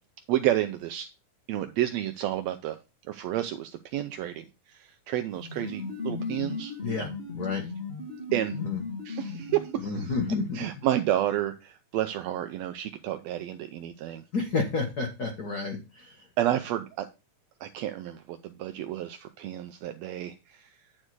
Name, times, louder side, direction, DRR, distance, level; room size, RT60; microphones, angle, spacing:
voice 1, 0.3-1.1 1.5-2.8 3.1-6.7 8.3-8.6 9.0-10.1 10.5-14.2 16.4-17.1 17.6-20.7, right 12 dB, 85° right, 8 dB, 1.5 m, -30 dB
sound 1, 5.3-10.2, left 4 dB, 25° left, 1.5 m, -37 dB
voice 2, 6.8-7.6 8.5-8.8 9.9-10.7 14.3-16.2, left 4 dB, 80° left, 2 dB, 0.8 m, -30 dB
9.8 x 4.3 x 4.6 m, 0.28 s
omnidirectional pair, 3.6 m